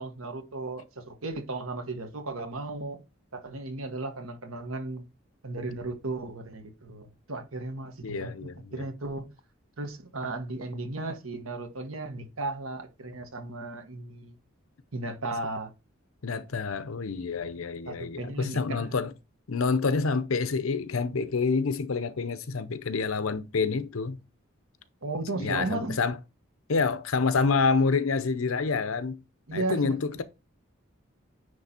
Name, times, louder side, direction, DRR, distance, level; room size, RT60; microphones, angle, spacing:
voice 1, 0.0-3.0 3.3-5.0 5.4-8.3 8.7-9.2 9.8-14.3 14.9-15.7 17.9-19.0 25.0-26.0 29.5-30.2, right 2 dB, 90° right, 1.4 m, -35 dB
voice 2, 8.0-8.8 16.2-19.1 19.5-24.2 25.4-26.2 26.7-29.2 29.5-30.2, left 4 dB, 80° left, 0.7 m, -27 dB
9.5 x 3.3 x 4.3 m
head